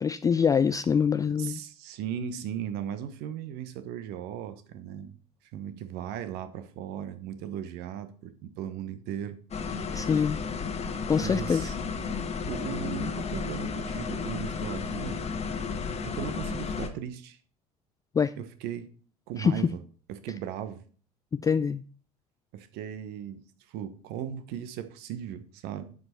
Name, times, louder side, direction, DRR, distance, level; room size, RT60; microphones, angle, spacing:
voice 1, 0.0-1.6 9.9-10.4 11.1-11.7 18.2-18.3 19.4-19.6 21.3-21.8, left 6 dB, 20° left, 0.3 m, -25 dB
voice 2, 1.4-5.1 5.5-9.4 11.2-11.8 12.5-15.2 16.0-17.4 18.4-18.9 19.3-19.8 20.1-20.8 22.5-25.9, right 9 dB, 55° right, 1.0 m, -37 dB
sound 1, 9.5-16.9, left 5 dB, 35° left, 1.4 m, -33 dB
11.0 x 4.9 x 4.3 m
figure-of-eight pair, 65°, 19 cm